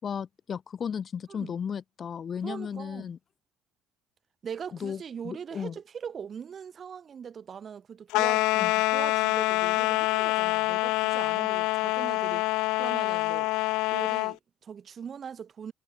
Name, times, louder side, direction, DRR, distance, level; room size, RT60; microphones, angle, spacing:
voice 1, 0.0-3.2 4.8-5.8 8.6-8.7, left 7 dB, 45° left, 5.8 m, -35 dB
voice 2, 2.4-3.1 4.4-8.5 8.9-12.5 12.8-13.5 13.9-15.7, right 7 dB, 45° right, 7.2 m, -40 dB
sound 1, 8.1-14.4, left 21 dB, 75° left, 1.0 m, -26 dB
supercardioid pair, 75°, 0 cm